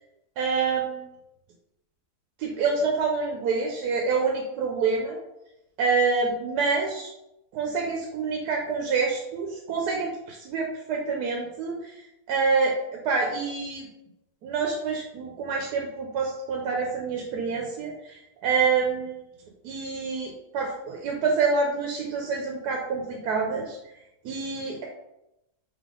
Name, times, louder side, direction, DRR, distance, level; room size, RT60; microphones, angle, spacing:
voice 1, 0.4-1.0 2.4-5.2 5.8-7.1 7.5-11.9 12.3-12.8 13.0-13.9 14.4-19.1 19.6-23.8 24.2-24.8, right 4 dB, 90° right, 0 dB, 1.2 m, -27 dB
3.4 x 3.0 x 3.7 m, 0.87 s
omnidirectional pair, 1.7 m